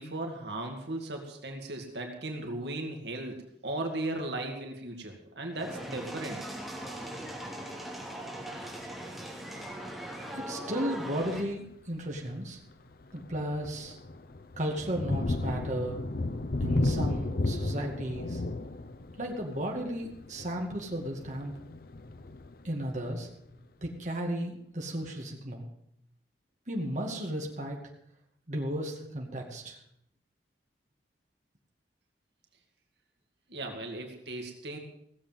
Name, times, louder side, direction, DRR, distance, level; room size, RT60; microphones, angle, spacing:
voice 1, 0.0-6.4 33.5-34.8, right 2 dB, 70° right, 2 dB, 2.3 m, -37 dB
sound 1, 5.5-11.4, right 1 dB, ahead, 2.7 m, -40 dB
voice 2, 10.3-12.6 13.1-14.0 14.6-16.0 16.6-18.4 19.2-21.5 22.6-23.3 23.8-25.6 26.7-27.8 28.5-29.8, right 1 dB, 45° right, -1 dB, 2.2 m, -34 dB
Thunder, 11.2-11.5 12.1-12.3 12.7-23.3, left 2 dB, 55° left, 0.7 m, -34 dB
17.0 x 7.6 x 7.5 m, 0.74 s
head